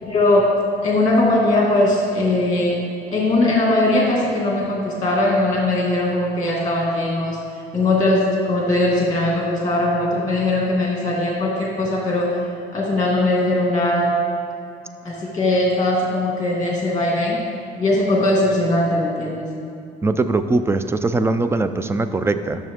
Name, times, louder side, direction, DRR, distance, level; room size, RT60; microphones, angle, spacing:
voice 1, 0.0-0.5 0.8-2.8 3.1-7.4 7.7-12.3 12.7-14.2 15.0-17.4 17.8-19.5, left 2 dB, 25° left, -3 dB, 2.0 m, -20 dB
voice 2, 20.0-22.6, right 3 dB, 15° right, 10 dB, 0.4 m, -21 dB
12.0 x 6.5 x 3.6 m, 2.5 s
cardioid pair, 110°, 17 cm